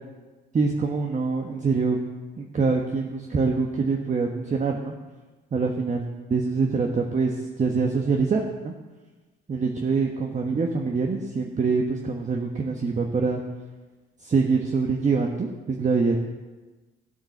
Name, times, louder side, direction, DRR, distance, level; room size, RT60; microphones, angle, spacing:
voice 1, 0.5-2.0 2.4-4.9 5.5-8.7 9.5-13.4 14.2-16.2, right 4 dB, 35° right, 1 dB, 1.4 m, -25 dB
12.5 x 9.5 x 7.2 m, 1.2 s
cardioid pair, 90°, 20 cm